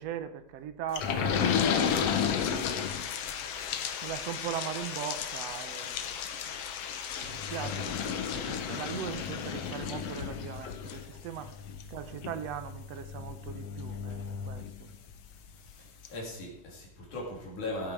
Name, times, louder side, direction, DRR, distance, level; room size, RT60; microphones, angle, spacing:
voice 1, 0.0-3.1 4.0-6.0 7.2-11.5 11.9-14.9, right 9 dB, 70° right, 11 dB, 1.7 m, -40 dB
sound 1, 0.9-15.3 15.7-15.8 16.0-16.1, left 7 dB, 65° left, 1.8 m, -33 dB
voice 2, 7.5-8.0 15.6-17.9, left 2 dB, 80° left, -2 dB, 4.2 m, -39 dB
15.5 x 8.6 x 4.7 m, 0.76 s
omnidirectional pair, 3.4 m